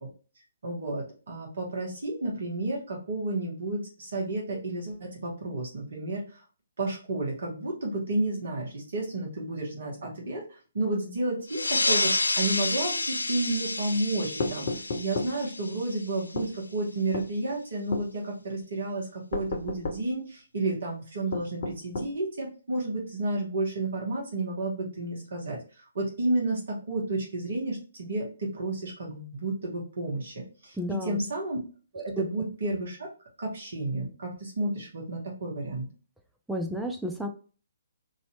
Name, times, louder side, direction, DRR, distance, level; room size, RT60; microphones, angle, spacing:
voice 1, 0.6-6.4 6.8-30.8 31.0-31.6 31.9-33.1 33.4-35.8, right 2 dB, 60° right, -1 dB, 1.4 m, -31 dB
sound 1, 11.5-16.6, left 2 dB, 80° left, 0.4 m, -29 dB
sound 2, 14.4-15.3 16.3-16.5 17.1-17.3 17.9-18.1 19.3-20.0 21.3-22.1, left 2 dB, 50° left, 0.7 m, -32 dB
voice 2, 30.8-31.2 32.2-32.3 36.5-37.3, equal, 5° right, 2 dB, 0.4 m, -31 dB
3.1 x 2.7 x 2.8 m, 0.37 s
figure-of-eight pair, 130°, 0 cm